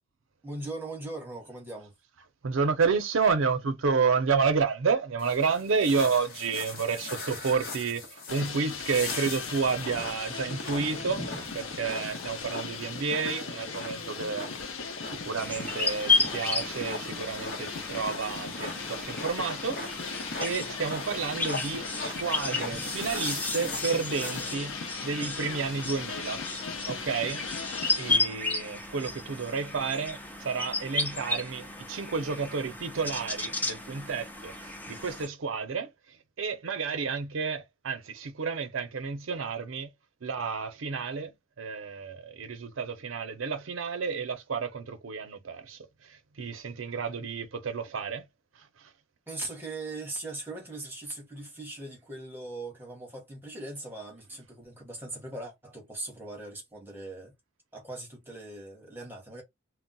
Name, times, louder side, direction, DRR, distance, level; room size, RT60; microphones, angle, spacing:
voice 1, 0.4-1.9 49.3-57.3 57.7-59.4, right 2 dB, 10° right, 1.0 m, -40 dB
voice 2, 2.4-14.5 15.1-26.4 26.9-39.9 40.2-48.2, right 5 dB, 80° right, 0.5 m, -31 dB
sound 1, 5.2-24.5, left 2 dB, 50° left, 1.0 m, -40 dB
sound 2, 8.3-28.2, left 5 dB, 85° left, 0.6 m, -38 dB
sound 3, 15.4-35.3, left 3 dB, 10° left, 0.5 m, -33 dB
2.2 x 2.1 x 3.8 m
head